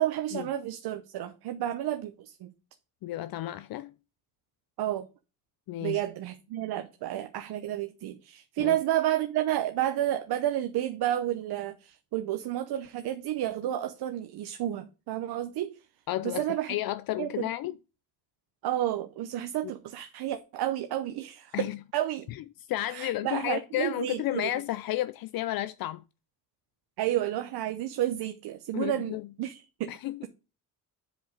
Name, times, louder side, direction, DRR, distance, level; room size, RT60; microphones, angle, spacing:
voice 1, 0.0-2.5 4.8-5.1 5.8-15.8 16.2-16.8 17.2-17.5 18.6-22.3 22.9-24.5 27.0-29.9, right 12 dB, 80° right, 0.8 m, -31 dB
voice 2, 3.0-4.0 5.7-6.0 8.6-8.8 16.1-17.7 21.5-21.8 22.7-26.0 28.7-29.3 29.9-30.3, left 14 dB, 65° left, 0.5 m, -32 dB
7.7 x 5.1 x 5.0 m
cardioid pair, 120°, 38 cm